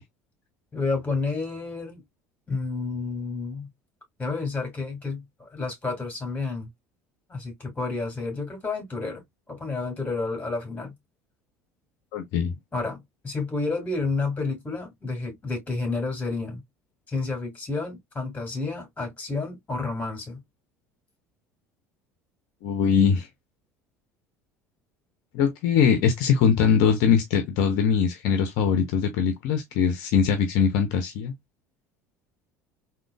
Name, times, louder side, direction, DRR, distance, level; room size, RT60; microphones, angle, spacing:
voice 1, 0.7-2.0 2.5-3.7 4.2-6.7 7.3-9.2 9.5-11.0 12.7-16.6 17.1-20.4, left 3 dB, 20° left, 2.5 m, -30 dB
voice 2, 12.1-12.6 22.6-23.3 25.3-31.3, left 7 dB, 60° left, 0.7 m, -22 dB
3.7 x 2.9 x 2.2 m
figure-of-eight pair, 65°, 8 cm